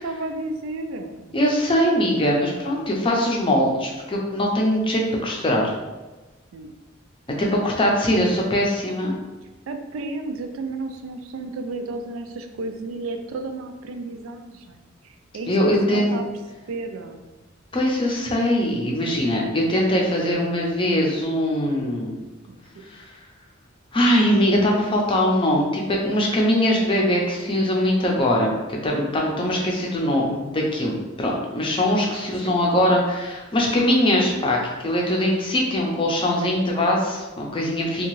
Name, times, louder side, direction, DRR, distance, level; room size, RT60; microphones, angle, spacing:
voice 1, 0.0-1.4 6.5-6.7 9.7-16.2 16.7-17.3 22.5-22.9 31.9-32.1 32.4-32.7, right 3 dB, 90° right, 6 dB, 0.3 m, -33 dB
voice 2, 1.3-5.6 7.4-9.1 15.5-16.2 17.7-22.2 22.9-23.1 23.9-38.1, left 1 dB, 25° left, -1 dB, 0.5 m, -21 dB
2.7 x 2.3 x 3.0 m, 1.2 s
head